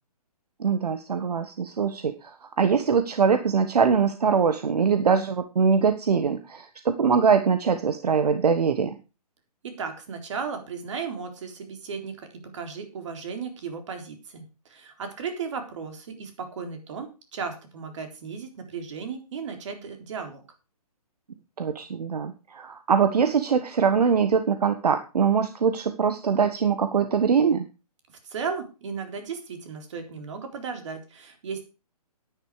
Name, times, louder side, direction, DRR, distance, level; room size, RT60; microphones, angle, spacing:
voice 1, 0.6-9.0 21.6-27.6, right 6 dB, 75° right, 9 dB, 1.4 m, -23 dB
voice 2, 9.6-14.4 14.7-20.4 28.2-31.6, right 5 dB, 50° right, 6 dB, 3.9 m, -35 dB
10.5 x 10.0 x 4.9 m, 0.31 s
hypercardioid pair, 160°, 20 cm